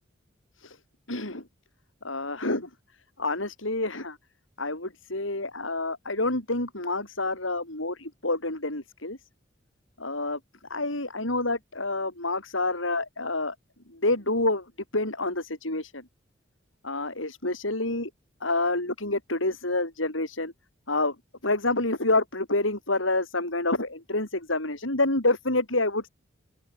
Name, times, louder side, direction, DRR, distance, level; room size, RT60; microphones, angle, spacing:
voice 1, 1.1-1.4 2.0-2.7 3.2-4.2 4.6-9.2 10.0-10.4 10.7-13.5 13.9-14.6 14.9-16.0 16.8-18.1 18.4-20.5 20.9-21.1 21.4-26.1, left 2 dB, 80° left, 7.7 m, -28 dB
open air
head